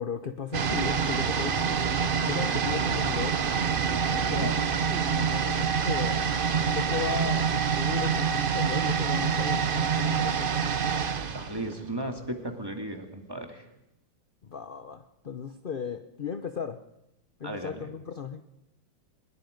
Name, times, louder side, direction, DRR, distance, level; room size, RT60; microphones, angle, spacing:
voice 1, 0.0-1.9 2.3-3.4 4.2-6.2 6.7-10.5 14.4-16.8 17.4-18.4, left 6 dB, 50° left, 8 dB, 0.6 m, -36 dB
sound 1, 0.5-12.3 12.5-12.6, right 6 dB, 50° right, 0.6 m, -26 dB
voice 2, 11.3-13.6 17.4-17.9, right 1 dB, 10° right, 4 dB, 2.4 m, -35 dB
23.5 x 21.0 x 5.2 m, 0.87 s
omnidirectional pair, 2.1 m